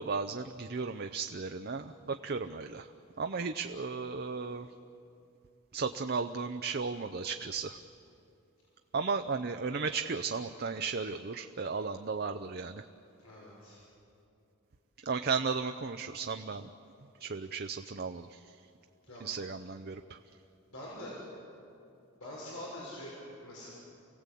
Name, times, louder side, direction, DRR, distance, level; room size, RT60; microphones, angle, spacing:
voice 1, 0.0-2.9 3.2-4.7 5.7-7.8 8.9-12.8 15.1-16.7 17.2-18.4 19.2-20.2, right 4 dB, 45° right, 7 dB, 0.6 m, -35 dB
voice 2, 13.2-13.8 19.0-19.3 20.6-21.1 22.2-23.7, left 1 dB, 90° left, -4 dB, 6.0 m, -45 dB
29.5 x 17.5 x 8.4 m, 2.6 s
head